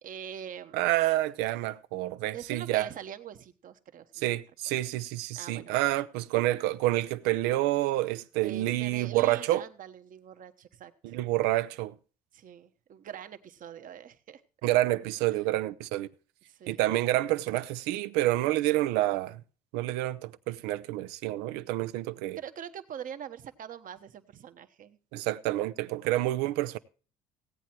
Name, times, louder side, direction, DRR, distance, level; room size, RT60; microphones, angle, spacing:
voice 1, 0.0-0.7 2.3-4.3 5.4-5.8 8.4-11.1 12.3-14.4 16.5-16.9 22.3-25.0, right 9 dB, 55° right, 1.2 m, -43 dB
voice 2, 0.7-2.9 4.2-9.6 11.0-11.9 14.6-16.1 16.7-19.4 19.7-22.4 25.1-26.8, right 16 dB, 85° right, 0.6 m, -28 dB
16.5 x 8.4 x 4.5 m
supercardioid pair, 75°, 17 cm